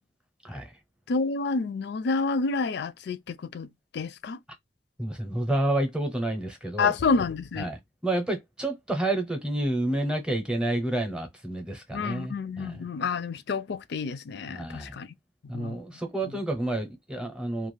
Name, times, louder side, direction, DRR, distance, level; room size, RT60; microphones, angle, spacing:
voice 1, 1.1-3.7 3.9-4.4 6.8-7.7 11.9-15.1 15.5-15.8, left 4 dB, 60° left, 0.4 m, -29 dB
voice 2, 5.0-6.9 7.6-12.8 14.5-15.0 15.5-17.7, right 1 dB, 5° right, 0.7 m, -29 dB
2.4 x 2.4 x 3.1 m
head